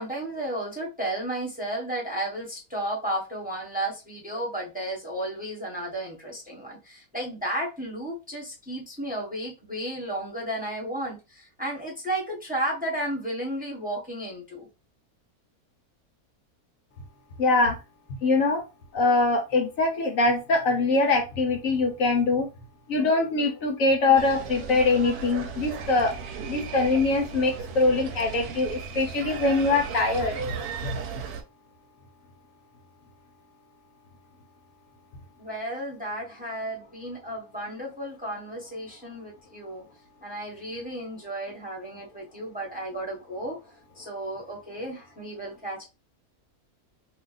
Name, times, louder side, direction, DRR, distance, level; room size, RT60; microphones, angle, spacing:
voice 1, 0.0-14.7 35.4-39.8 40.2-43.6 43.9-45.8, right 1 dB, 5° right, -3 dB, 1.0 m, -33 dB
voice 2, 17.4-17.8 18.2-18.6 18.9-22.5 22.9-26.1 26.5-30.3 30.8-31.0, left 3 dB, 65° left, 4 dB, 1.1 m, -23 dB
sound 1, 24.2-31.4, right 5 dB, 80° right, 1.1 m, -36 dB
2.7 x 2.3 x 3.9 m, 0.28 s
omnidirectional pair, 1.6 m